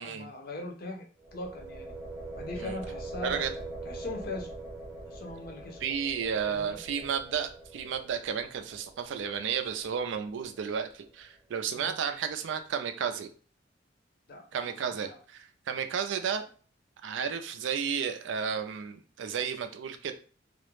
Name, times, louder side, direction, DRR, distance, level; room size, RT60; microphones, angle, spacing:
voice 1, 0.0-1.9 2.4-3.5 3.9-4.5 5.1-5.9 6.4-6.8 11.7-11.9 14.3-14.7 15.1-15.2, left 2 dB, 55° left, 3 dB, 0.6 m, -40 dB
sound 1, 1.2-11.0, right 2 dB, 20° right, 0.6 m, -43 dB
voice 2, 5.8-13.3 14.5-16.4 17.0-20.1, right 7 dB, 80° right, 7 dB, 0.4 m, -32 dB
2.4 x 2.0 x 3.0 m, 0.40 s
head